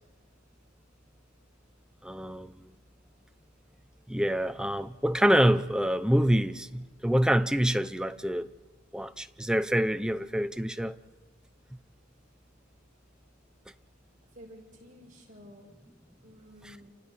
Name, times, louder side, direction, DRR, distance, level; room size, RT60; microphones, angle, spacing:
voice 1, 2.0-2.6 4.1-8.5 8.9-10.9 16.6-16.8, equal, 5° right, 0.6 m, -26 dB
voice 2, 14.3-15.8 16.2-16.9, equal, 40° right, 6.3 m, -51 dB
29.5 x 29.5 x 4.2 m
head